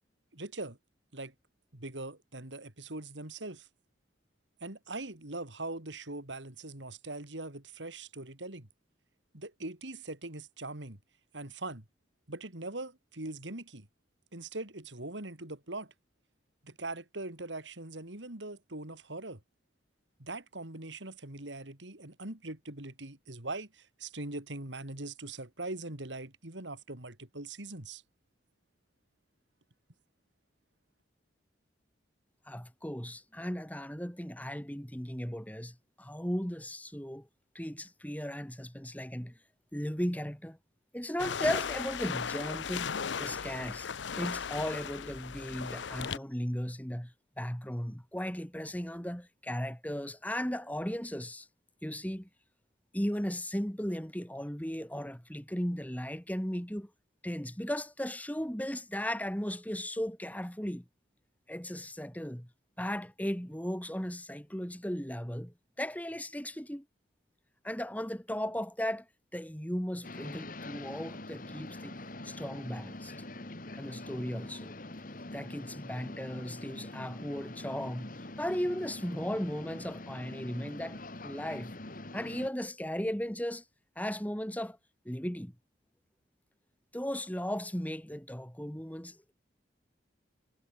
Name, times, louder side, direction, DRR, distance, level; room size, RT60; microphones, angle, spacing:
voice 1, 0.3-0.8 1.1-1.3 1.7-3.7 4.6-8.7 9.3-11.0 11.3-11.8 12.3-13.9 14.3-15.9 16.6-19.4 20.2-28.0, right 2 dB, 80° right, 3.4 m, -41 dB
voice 2, 32.5-37.3 37.5-39.3 39.7-40.6 40.9-42.9 43.2-43.9 44.1-51.5 51.8-52.3 52.9-56.9 57.2-60.8 61.5-62.5 62.8-66.8 67.6-69.1 69.3-72.0 72.2-73.1 73.8-74.7 75.3-81.7 82.1-83.6 84.0-84.8 85.0-85.5 86.9-89.2, equal, 10° left, 2.6 m, -36 dB
sound 1, 41.2-46.2, left 6 dB, 80° left, 0.7 m, -36 dB
sound 2, 70.0-82.5, left 2 dB, 45° left, 1.8 m, -44 dB
head